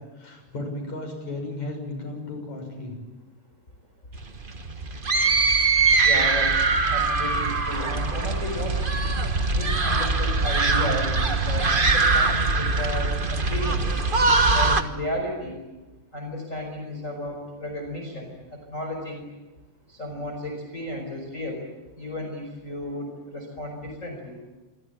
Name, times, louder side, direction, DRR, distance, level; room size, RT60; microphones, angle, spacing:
voice 1, 0.0-3.0, left 2 dB, 70° left, 5 dB, 8.1 m, -34 dB
sound 1, 4.2-14.8, right 3 dB, 75° right, 0.4 m, -22 dB
voice 2, 6.0-8.8 9.5-13.8 14.5-15.6 16.1-19.3 19.9-21.6 22.0-24.4, left 1 dB, 25° left, 2 dB, 5.3 m, -33 dB
27.5 x 23.5 x 9.0 m, 1.1 s
omnidirectional pair, 3.3 m